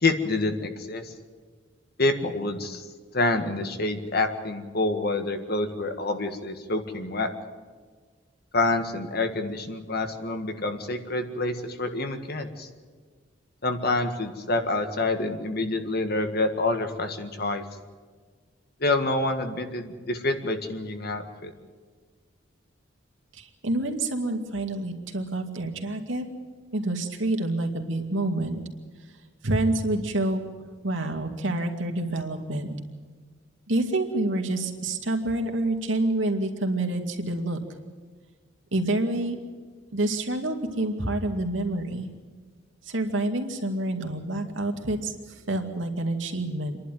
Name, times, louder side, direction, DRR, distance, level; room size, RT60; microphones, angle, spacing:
voice 1, 0.0-1.1 2.0-2.8 3.1-7.3 8.5-12.7 13.6-17.6 18.8-21.5, left 2 dB, 55° left, 7 dB, 1.8 m, -27 dB
voice 2, 23.3-26.2 26.7-28.6 29.4-30.4 30.8-32.7 33.7-37.6 38.7-39.4 39.9-42.1 42.8-46.8, right 2 dB, 85° right, 3 dB, 2.4 m, -27 dB
27.5 x 11.5 x 9.4 m, 1.5 s
head